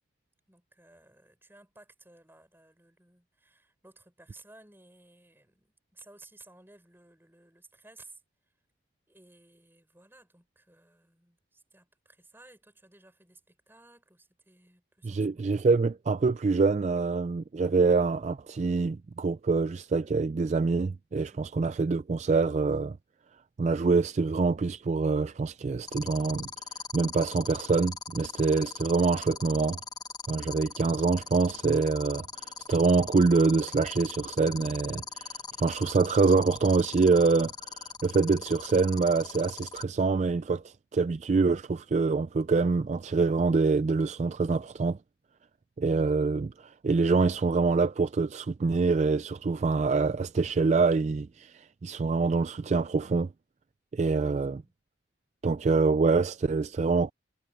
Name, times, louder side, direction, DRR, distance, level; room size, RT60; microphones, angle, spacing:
voice 1, 0.5-8.5 9.1-15.7 21.3-21.5 54.1-54.7, right 2 dB, 10° right, 6.1 m, -57 dB
voice 2, 15.0-23.0 23.6-26.5 26.9-29.8 30.3-45.0 45.8-53.3 53.9-54.6 55.4-57.1, right 4 dB, 40° right, 0.3 m, -25 dB
sound 1, 25.9-39.8, left 6 dB, 20° left, 1.3 m, -39 dB
head